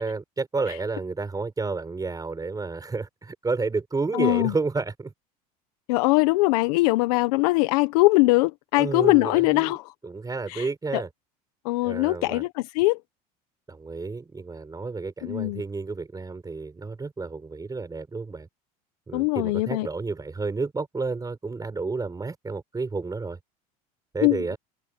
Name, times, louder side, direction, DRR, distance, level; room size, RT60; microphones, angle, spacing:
voice 1, 0.0-5.1 8.8-9.7 10.0-11.1 11.8-12.4 13.7-18.5 19.1-23.4 24.1-24.6, right 4 dB, 20° right, 7.0 m, -31 dB
voice 2, 4.1-4.5 5.9-9.8 10.5-11.0 11.6-13.0 15.2-15.6 19.1-19.9 24.2-24.5, left 22 dB, 75° left, 1.3 m, -22 dB
supercardioid pair, 90°, 19 cm